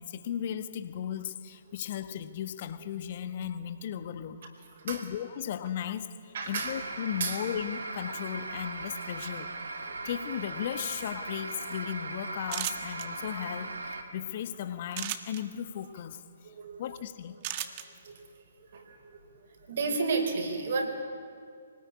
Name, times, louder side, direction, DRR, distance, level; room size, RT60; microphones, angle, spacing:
voice 1, 0.0-4.4 4.8-9.5 10.0-16.2 16.8-17.4, left 9 dB, 45° left, 11 dB, 1.4 m, -36 dB
voice 2, 6.3-6.7 7.2-7.4 9.2-9.3 9.9-10.0 16.4-16.9 17.6-17.7 18.0-18.3 18.7-19.2 19.7-20.9, right 4 dB, 55° right, 3 dB, 4.7 m, -32 dB
sound 1, 6.6-14.0, right 3 dB, 75° right, 2.7 m, -39 dB
sound 2, 12.5-13.0 14.9-15.4 17.4-17.8, right 12 dB, 35° right, 1.5 m, -34 dB
24.5 x 19.5 x 9.7 m, 2.2 s
figure-of-eight pair, 130°, 0 cm